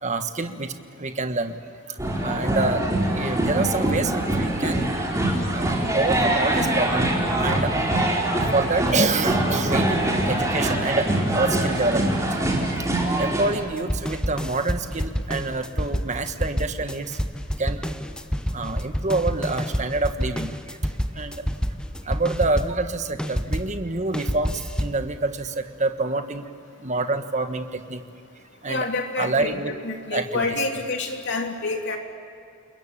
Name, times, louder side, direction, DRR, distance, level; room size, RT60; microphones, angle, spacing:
voice 1, 0.0-1.6 1.9-2.8 3.1-4.9 5.5-7.7 8.5-12.3 13.0-17.2 17.6-17.9 18.5-20.8 21.1-21.5 22.0-26.5 26.8-28.1 28.6-28.9 29.2-29.7 30.1-30.6, right 3 dB, 35° right, 8 dB, 1.5 m, -27 dB
sound 1, 2.0-13.5, right 1 dB, 15° right, 4.2 m, -23 dB
sound 2, 13.6-23.7 24.1-25.0, equal, 5° left, 0.9 m, -28 dB
voice 2, 28.7-32.0, left 3 dB, 55° left, 2 dB, 3.3 m, -28 dB
29.5 x 21.5 x 8.9 m, 2.5 s
head